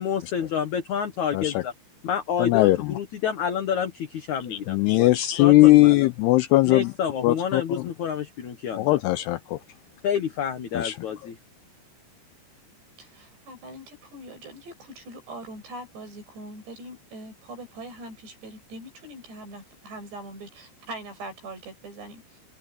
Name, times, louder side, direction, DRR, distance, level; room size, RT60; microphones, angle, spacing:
voice 1, 0.0-1.7 2.0-5.1 5.4-6.1 6.7-9.0 10.0-11.4, left 8 dB, 60° left, 2.1 m, -29 dB
voice 2, 1.3-1.6 2.4-2.9 4.5-6.9 7.2-7.6 8.8-9.6 10.7-10.9, left 18 dB, 80° left, 2.4 m, -19 dB
voice 3, 13.0-22.2, right 1 dB, 70° right, 9.7 m, -42 dB
omnidirectional pair, 5.2 m